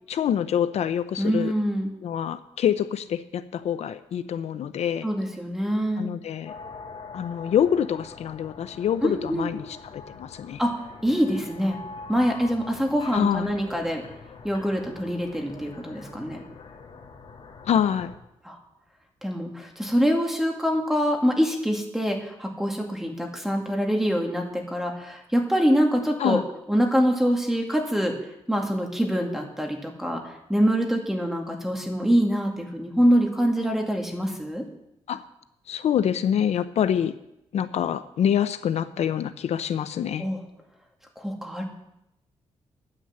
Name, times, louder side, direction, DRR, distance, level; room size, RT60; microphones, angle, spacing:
voice 1, 0.1-1.5 2.0-5.1 6.0-6.5 7.1-10.6 13.1-13.5 17.7-18.1 26.2-26.4 35.1-35.3 35.7-37.1 37.5-40.2, left 9 dB, 70° left, 12 dB, 0.6 m, -26 dB
voice 2, 1.2-1.9 5.0-6.1 9.0-9.5 10.6-10.7 11.0-11.8 12.1-14.0 14.4-16.4 18.5-18.6 19.2-26.4 26.7-28.1 28.5-30.2 30.5-34.6 40.2-40.4 41.2-41.6, equal, 5° right, 1 dB, 2.4 m, -24 dB
sound 1, 6.5-18.2, left 4 dB, 50° left, 2.7 m, -44 dB
9.9 x 9.9 x 8.1 m, 0.84 s
cardioid pair, 125°, 11 cm